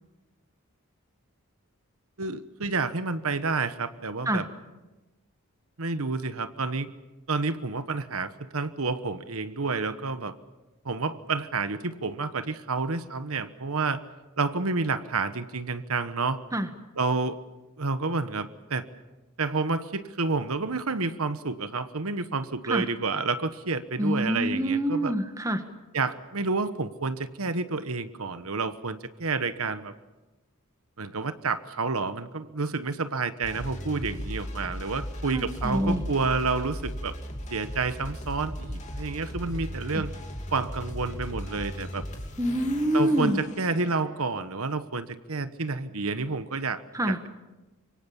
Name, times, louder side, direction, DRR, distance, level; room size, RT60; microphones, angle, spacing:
voice 1, 2.2-4.5 5.8-6.9 7.3-10.3 10.8-14.0 14.4-16.4 16.9-17.4 17.8-18.8 19.4-25.1 25.9-29.9 31.0-37.2 37.5-40.1 40.5-42.0 42.9-47.3, right 4 dB, 75° right, 11 dB, 1.2 m, -29 dB
voice 2, 24.0-25.6 35.3-36.0 42.4-43.4 46.9-47.2, equal, 15° right, 8 dB, 1.7 m, -26 dB
sound 1, 33.4-44.5, equal, 30° left, 2.9 m, -37 dB
26.5 x 24.0 x 7.1 m, 1.1 s
head